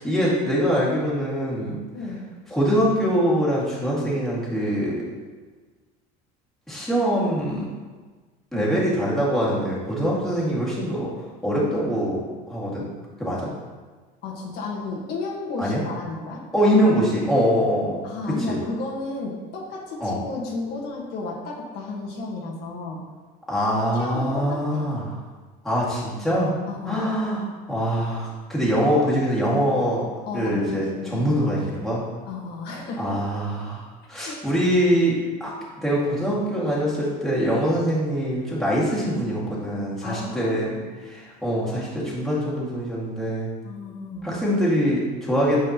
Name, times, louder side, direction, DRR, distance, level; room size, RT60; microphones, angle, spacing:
voice 1, 0.0-1.8 2.5-5.0 6.7-7.7 8.5-11.1 11.4-12.9 13.2-13.5 15.6-15.8 16.5-18.0 18.5-18.6 20.0-20.2 23.5-25.1 25.6-26.5 26.9-30.0 30.3-32.0 33.0-35.5 35.8-43.5 44.2-45.6, equal, ahead, -8 dB, 2.1 m, -23 dB
voice 2, 14.2-16.4 18.0-23.0 23.9-24.8 26.7-27.1 30.3-31.6 32.2-33.1 34.3-34.4 40.0-40.9 43.6-44.3, left 3 dB, 60° left, -2 dB, 1.5 m, -33 dB
9.0 x 5.2 x 2.9 m, 1.4 s
cardioid pair, 130°, 19 cm